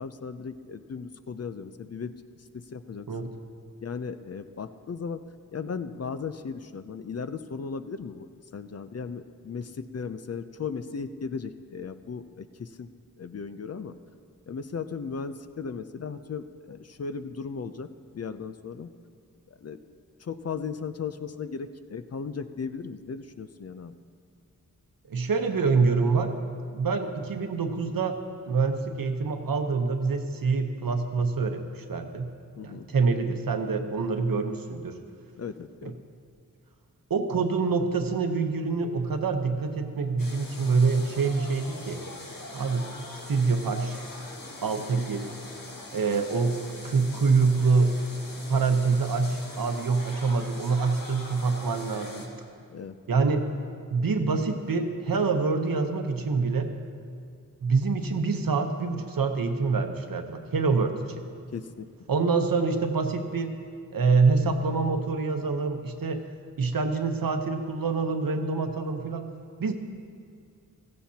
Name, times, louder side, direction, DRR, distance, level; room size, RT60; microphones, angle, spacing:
voice 1, 0.0-2.1 2.5-3.1 3.8-5.2 5.5-12.9 13.2-14.0 14.5-17.9 18.1-18.9 19.5-19.8 20.2-23.9 32.6-32.9 35.4-35.9 45.0-45.1 48.3-48.4 52.7-53.0 61.5-61.9, left 5 dB, 45° left, 11 dB, 0.5 m, -36 dB
voice 2, 25.1-26.3 26.7-28.2 28.5-32.3 32.6-34.9 37.1-42.0 42.5-42.9 43.3-44.0 44.6-45.2 45.9-46.6 46.8-47.9 48.5-52.3 53.1-53.5 53.9-56.7 57.6-61.2 62.1-63.5 63.9-66.2 66.6-69.3 69.6-69.7, right 4 dB, 75° right, 6 dB, 1.0 m, -26 dB
sound 1, 40.2-52.3, left 2 dB, 75° left, 1.7 m, -42 dB
16.0 x 14.5 x 2.8 m, 2.2 s
wide cardioid pair, 95°, 34 cm